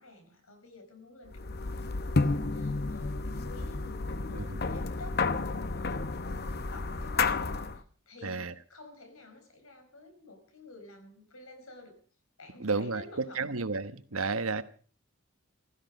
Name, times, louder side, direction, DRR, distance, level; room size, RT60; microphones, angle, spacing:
voice 1, 0.0-12.0 12.4-13.6 14.4-14.6, left 2 dB, 85° left, 7 dB, 5.0 m, -51 dB
sound 1, 1.3-7.8, left 3 dB, 50° left, 0.8 m, -31 dB
voice 2, 8.2-8.5 12.6-14.6, right 4 dB, 80° right, 11 dB, 1.1 m, -32 dB
15.5 x 15.5 x 5.3 m, 0.43 s
head